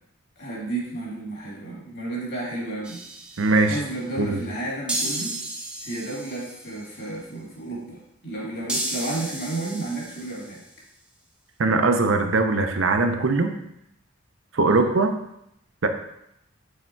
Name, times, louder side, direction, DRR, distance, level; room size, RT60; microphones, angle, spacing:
voice 1, 0.4-3.0 3.7-5.4 5.8-10.6 14.6-14.9, right 2 dB, 50° left, -4 dB, 2.3 m, -32 dB
sound 1, 2.8-3.8 4.9-6.8 8.7-10.6, right 1 dB, 5° right, 0.6 m, -33 dB
voice 2, 3.4-3.8 4.2-4.4 11.6-13.5 14.5-15.1 15.8-15.9, right 3 dB, 65° right, 6 dB, 0.6 m, -20 dB
6.4 x 3.6 x 4.5 m, 0.78 s
head